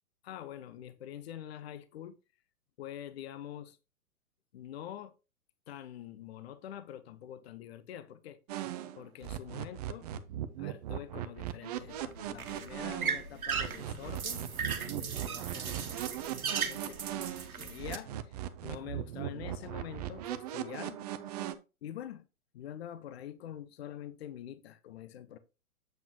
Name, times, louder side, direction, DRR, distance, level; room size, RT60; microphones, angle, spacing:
voice 1, 0.2-2.2 2.8-3.8 4.5-5.1 5.7-8.4 9.0-10.1 10.6-14.4 14.7-16.1 16.5-21.0 21.8-22.3 22.5-25.4, left 11 dB, 45° left, 0.8 m, -45 dB
sound 1, 8.5-13.2 13.5-17.5 17.8-21.5, right 12 dB, 30° right, 0.6 m, -39 dB
sound 2, 11.8-18.0, right 6 dB, 75° right, 1.3 m, -37 dB
8.0 x 7.0 x 2.9 m
figure-of-eight pair, 115°, 43 cm